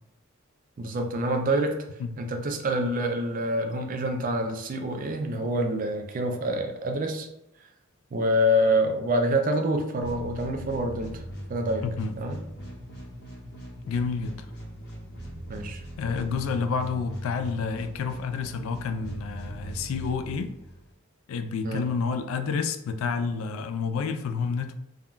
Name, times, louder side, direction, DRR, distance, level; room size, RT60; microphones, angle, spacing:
voice 1, 0.8-1.8 2.2-7.3 8.1-11.2 11.5-11.8 12.2-12.4 15.5-15.8 21.6-21.9, equal, 40° right, 0.4 m, -26 dB
sound 1, 10.0-20.9, equal, 55° left, 0.8 m, -40 dB
voice 2, 11.8-12.1 13.9-14.3 16.0-20.5 21.3-24.7, left 5 dB, 75° left, 0.3 m, -29 dB
3.5 x 2.2 x 2.4 m
head